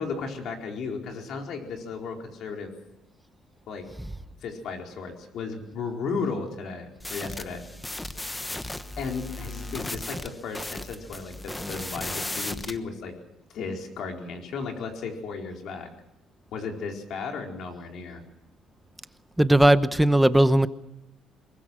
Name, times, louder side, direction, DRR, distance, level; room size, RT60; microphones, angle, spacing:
voice 1, 0.0-2.7 3.7-3.8 4.4-7.6 9.0-13.1 13.5-15.9 16.5-18.2, left 4 dB, 65° left, 2 dB, 4.5 m, -34 dB
sound 1, 7.0-12.8, left 1 dB, 10° left, 1.2 m, -36 dB
voice 2, 19.4-20.7, right 1 dB, 5° right, 13 dB, 0.9 m, -18 dB
23.0 x 21.0 x 6.3 m, 0.88 s
cardioid pair, 110°, 0 cm